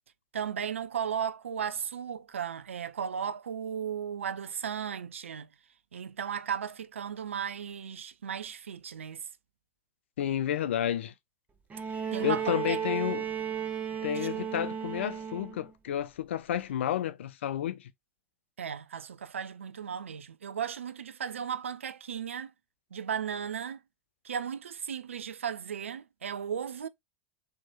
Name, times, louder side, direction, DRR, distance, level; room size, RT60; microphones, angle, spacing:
voice 1, 0.3-5.5 5.9-9.2 12.1-12.8 14.1-14.3 18.6-22.5 22.9-23.8 24.2-26.9, right 8 dB, 75° right, 0.4 m, -35 dB
voice 2, 10.2-11.1 12.2-13.3 14.0-17.8, left 10 dB, 65° left, 0.5 m, -31 dB
Bowed string instrument, 11.7-15.7 17.0-17.1, right 8 dB, 20° right, 0.9 m, -34 dB
4.3 x 2.9 x 2.3 m
figure-of-eight pair, 85°, 7 cm